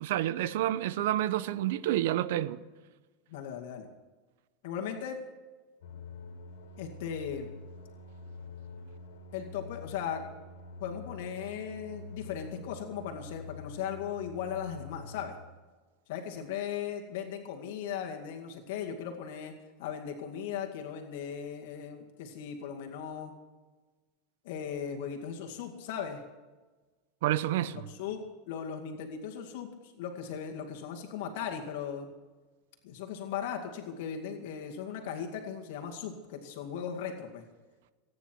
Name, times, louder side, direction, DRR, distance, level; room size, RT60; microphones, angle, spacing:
voice 1, 0.0-2.6 27.2-27.8, right 13 dB, 75° right, 0.9 m, -29 dB
voice 2, 3.3-3.9 4.6-5.2 6.8-7.5 9.3-10.2 10.8-15.4 16.1-19.5 19.8-23.3 24.4-26.2 27.7-32.1 32.8-37.4, left 8 dB, 70° left, 2.2 m, -38 dB
sound 1, 5.8-15.4, left 3 dB, 85° left, 2.4 m, -46 dB
26.0 x 9.8 x 4.7 m
supercardioid pair, 140°, 0 cm